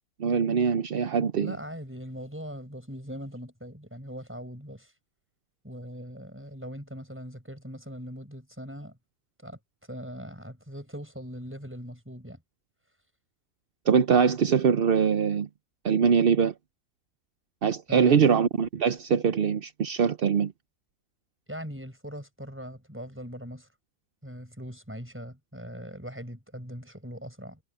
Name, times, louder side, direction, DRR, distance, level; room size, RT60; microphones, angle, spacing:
voice 1, 0.2-1.6 13.9-15.5 15.8-16.5 17.6-20.5, right 6 dB, 55° right, 0.6 m, -23 dB
voice 2, 1.3-4.9 5.6-9.0 9.4-9.6 9.9-12.4 17.9-18.3 21.5-23.7 24.2-27.6, equal, 5° right, 5.1 m, -40 dB
omnidirectional pair, 1.8 m